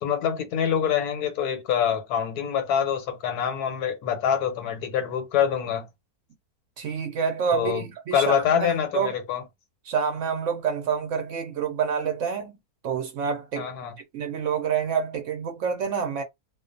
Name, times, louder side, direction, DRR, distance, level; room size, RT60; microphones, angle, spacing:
voice 1, 0.0-5.9 7.5-7.8 8.1-9.4 13.6-13.9, left 8 dB, 90° left, 1.2 m, -25 dB
voice 2, 6.8-9.1 9.9-12.6 12.8-13.7 14.1-16.2, right 6 dB, 65° right, 0.8 m, -27 dB
2.4 x 2.2 x 2.5 m
omnidirectional pair, 1.6 m